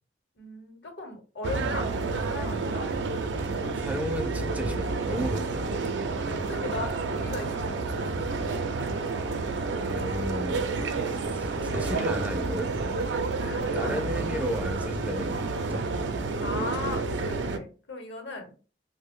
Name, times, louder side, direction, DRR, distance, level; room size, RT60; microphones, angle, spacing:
voice 1, 0.4-1.9 2.3-2.9 6.4-6.9 7.2-8.6 13.4-14.1 16.4-18.5, left 2 dB, 75° left, 4 dB, 1.0 m, -38 dB
sound 1, 1.4-17.6, right 3 dB, 80° right, 0.5 m, -30 dB
voice 2, 3.7-5.7 9.8-10.6 11.3-12.8 13.5-15.9, right 1 dB, 10° right, 5 dB, 0.4 m, -34 dB
3.3 x 2.1 x 3.6 m, 0.36 s
head